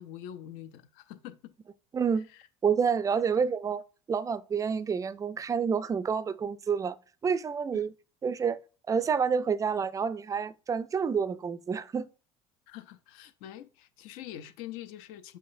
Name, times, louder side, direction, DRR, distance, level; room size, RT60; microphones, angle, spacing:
voice 1, 0.0-1.5 2.2-2.5 7.7-7.8 12.7-15.4, left 12 dB, 60° left, 0.5 m, -45 dB
voice 2, 1.9-2.3 2.6-7.0 7.2-7.9 8.2-8.6 8.9-12.1, right 6 dB, 20° right, 0.4 m, -28 dB
6.5 x 3.2 x 2.5 m
hypercardioid pair, 65°, 15 cm